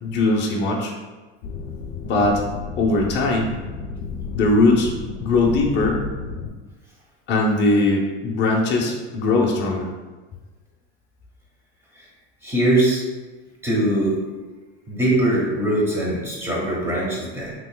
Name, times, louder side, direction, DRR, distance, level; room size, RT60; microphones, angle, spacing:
voice 1, 0.0-0.9 2.0-2.4 2.8-3.5 4.3-4.9 5.2-6.0 7.3-9.9, left 2 dB, 35° left, -1 dB, 0.6 m, -20 dB
sound 1, 1.4-6.5, left 4 dB, 75° left, 0.5 m, -32 dB
voice 2, 12.4-13.0 13.6-14.2 14.9-17.5, right 1 dB, 10° right, -4 dB, 1.0 m, -21 dB
3.6 x 3.0 x 2.3 m, 1.2 s
supercardioid pair, 110°, 33 cm